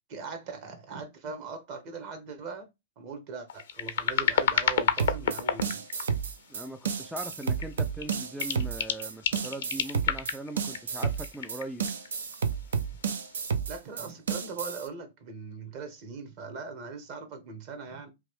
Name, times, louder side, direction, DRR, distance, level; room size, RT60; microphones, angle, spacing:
voice 1, 0.1-2.7 3.0-5.9 13.7-18.1, right 4 dB, 45° right, 1.1 m, -40 dB
sound 1, 3.5-6.4 7.0-7.7 8.0-12.5 13.3-13.5, left 8 dB, 65° left, 0.5 m, -30 dB
sound 2, 5.0-14.9, right 6 dB, 75° right, 0.5 m, -31 dB
voice 2, 6.5-11.9, right 1 dB, ahead, 0.3 m, -40 dB
3.0 x 2.4 x 3.4 m
hypercardioid pair, 115°, 0 cm